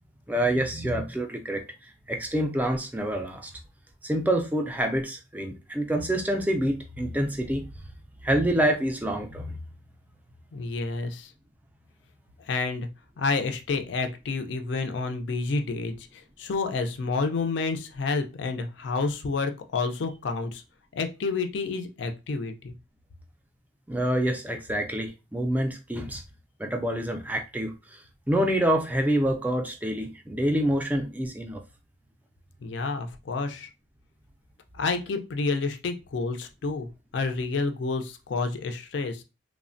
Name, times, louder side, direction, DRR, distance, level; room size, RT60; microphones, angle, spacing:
voice 1, 0.3-3.5 4.0-7.7 8.2-9.5 23.9-26.2 26.6-28.0 28.3-31.6, right 1 dB, 10° right, 0.3 m, -27 dB
voice 2, 10.5-11.3 12.5-12.9 13.2-20.6 21.0-22.7 32.6-33.7 34.7-39.2, left 4 dB, 65° left, 0.4 m, -29 dB
3.1 x 2.1 x 2.5 m
head